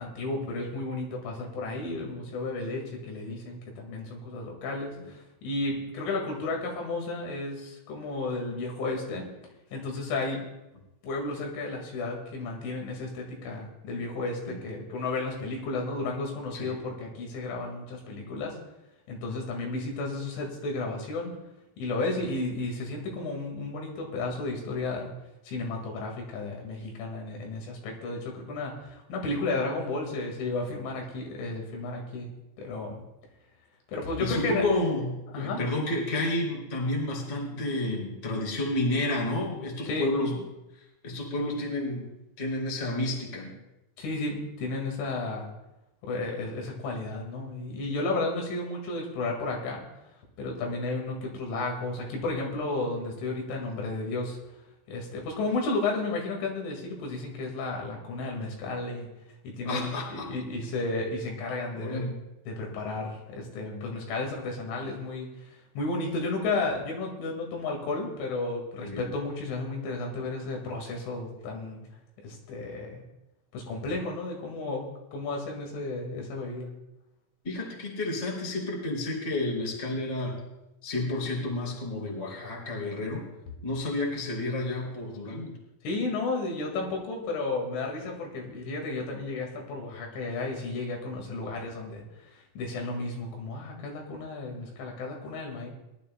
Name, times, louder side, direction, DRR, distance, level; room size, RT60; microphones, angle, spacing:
voice 1, 0.0-9.3 9.7-10.4 11.0-18.6 19.1-21.4 21.8-25.1 25.5-32.3 32.6-33.0 33.9-34.6 35.3-35.6 39.9-40.1 44.0-45.5 46.0-49.8 50.4-54.4 54.9-59.1 59.4-62.0 62.5-65.3 65.8-71.8 72.2-73.0 73.5-76.7 85.8-95.7, left 3 dB, 70° left, 0 dB, 4.3 m, -33 dB
voice 2, 34.2-40.4 40.8-42.1 42.4-43.5 59.6-60.3 61.7-62.1 68.8-69.1 77.4-80.4 80.8-83.2 83.6-85.5, left 1 dB, 20° left, -2 dB, 2.0 m, -30 dB
22.0 x 12.0 x 2.2 m, 0.95 s
omnidirectional pair, 5.9 m